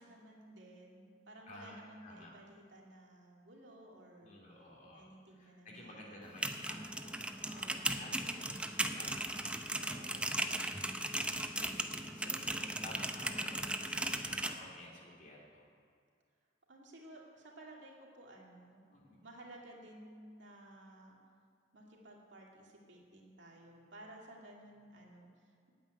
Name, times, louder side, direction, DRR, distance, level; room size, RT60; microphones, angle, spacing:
voice 1, 0.0-4.4 4.9-6.2 7.5-8.1 9.7-10.8 16.7-18.8 19.2-21.2 21.7-25.7, right 1 dB, 70° right, -2 dB, 2.3 m, -55 dB
voice 2, 1.5-2.3 4.2-9.2 10.4-10.8 11.5-15.7 18.9-19.2, left 1 dB, 40° left, -3 dB, 2.9 m, -53 dB
sound 1, 6.2-14.5, right 1 dB, 5° right, 0.5 m, -37 dB
9.1 x 8.5 x 9.2 m, 2.2 s
head